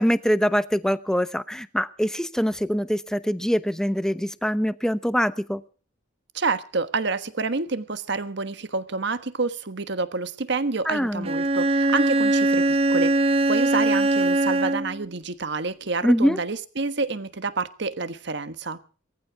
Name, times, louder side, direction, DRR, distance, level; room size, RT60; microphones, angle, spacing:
voice 1, 0.0-5.6 10.9-11.3 16.0-16.4, equal, 5° left, 0.9 m, -23 dB
voice 2, 6.3-18.8, right 3 dB, 65° right, 1.4 m, -28 dB
Bowed string instrument, 11.2-15.0, right 2 dB, 30° right, 0.9 m, -21 dB
20.0 x 15.0 x 4.7 m
head